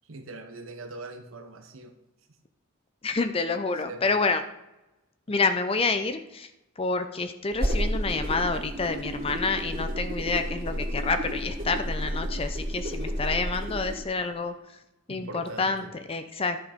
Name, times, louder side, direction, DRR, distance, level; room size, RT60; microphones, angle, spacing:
voice 1, 0.1-2.0 3.8-4.2 15.1-16.0, right 2 dB, 85° right, 5 dB, 1.0 m, -42 dB
voice 2, 3.0-4.4 5.3-6.5 6.8-14.5 15.1-16.6, left 3 dB, 30° left, 9 dB, 0.5 m, -28 dB
sound 1, 7.5-14.0, equal, 45° right, 2.7 m, -31 dB
11.0 x 6.3 x 5.1 m, 0.94 s
head